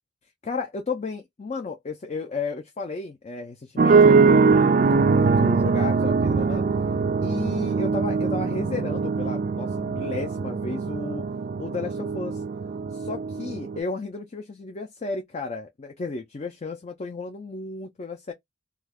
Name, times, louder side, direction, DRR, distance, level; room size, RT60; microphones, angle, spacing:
voice 1, 0.4-6.6 7.2-11.3 11.6-12.4 12.9-18.3, left 3 dB, 35° left, 0.4 m, -33 dB
sound 1, 3.8-13.8, right 4 dB, 40° right, 0.3 m, -22 dB
2.3 x 2.3 x 3.4 m
head